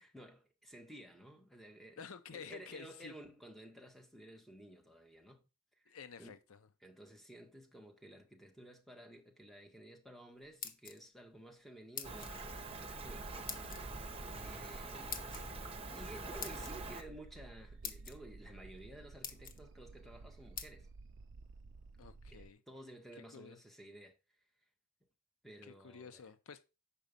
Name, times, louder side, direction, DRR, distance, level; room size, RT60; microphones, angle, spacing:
voice 1, 0.0-2.0 2.3-5.5 5.8-6.3 6.8-13.3 14.4-15.2 15.9-20.9 22.3-24.2 25.4-26.2, right 1 dB, ahead, 1.3 m, -54 dB
voice 2, 2.0-3.1 5.9-6.7 22.0-22.6 23.1-23.6 25.6-26.6, left 6 dB, 70° left, 0.6 m, -51 dB
sound 1, 10.4-11.2 11.9-12.4 13.5-13.8 15.1-15.4 16.4-16.7 17.4-17.5 17.8-18.1 18.8-18.9 19.2-19.6 20.6-20.7, left 7 dB, 40° left, 0.9 m, -44 dB
Rain, 12.0-17.0, right 2 dB, 25° right, 1.1 m, -45 dB
sound 2, 12.7-22.5, right 3 dB, 60° right, 0.4 m, -54 dB
7.0 x 5.1 x 5.2 m
head